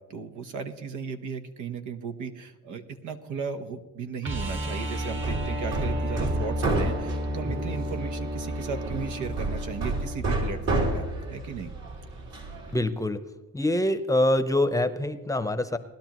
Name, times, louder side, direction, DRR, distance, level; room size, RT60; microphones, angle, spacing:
voice 1, 0.1-11.0 11.3-11.7, right 5 dB, 80° right, 8 dB, 1.1 m, -36 dB
sound 1, 4.2-10.2 12.7-12.8, equal, 40° right, 1.6 m, -32 dB
Hammer, 4.9-12.7, right 2 dB, 60° right, 3.1 m, -31 dB
voice 2, 12.7-13.2 13.5-15.8, left 1 dB, 10° left, 10 dB, 0.8 m, -25 dB
20.0 x 11.5 x 3.0 m, 1.1 s
cardioid pair, 90°, 30 cm